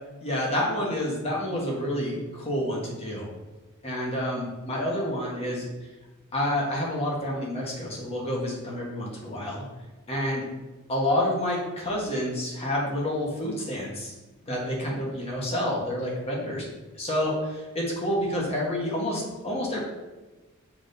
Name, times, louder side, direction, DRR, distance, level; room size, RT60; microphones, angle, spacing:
voice 1, 0.2-3.3 3.8-5.7 6.3-9.6 10.1-10.5 10.9-14.1 14.4-16.6 16.9-19.8, left 1 dB, 30° left, -3 dB, 1.5 m, -28 dB
6.1 x 4.1 x 4.0 m, 1.1 s
head